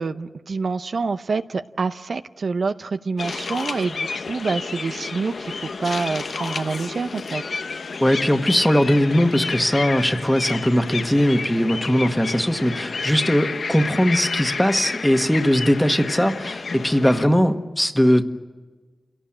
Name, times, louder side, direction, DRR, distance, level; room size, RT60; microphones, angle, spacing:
voice 1, 0.0-7.4, right 4 dB, 75° right, 10 dB, 0.7 m, -27 dB
sound 1, 3.2-17.3, left 4 dB, 80° left, 0.9 m, -30 dB
voice 2, 8.0-18.2, equal, 5° left, 7 dB, 1.5 m, -19 dB
28.0 x 17.5 x 8.8 m, 1.3 s
wide cardioid pair, 70°, 0 cm